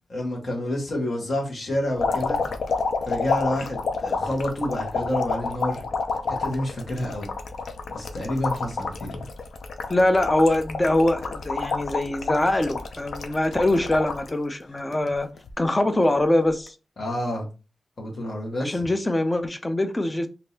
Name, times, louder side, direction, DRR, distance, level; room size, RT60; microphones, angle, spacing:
voice 1, 0.1-2.4 3.1-5.8 6.3-7.3 7.9-9.3 17.0-17.5 18.0-18.8, left 1 dB, 50° left, 1.4 m, -28 dB
sound 1, 2.0-14.3 14.8-15.5 16.5-16.7, left 4 dB, 90° left, 0.5 m, -29 dB
voice 2, 9.9-15.3 15.6-16.7 18.6-20.3, left 1 dB, 20° left, 0.4 m, -23 dB
3.5 x 2.8 x 2.8 m
wide cardioid pair, 130°, 0 cm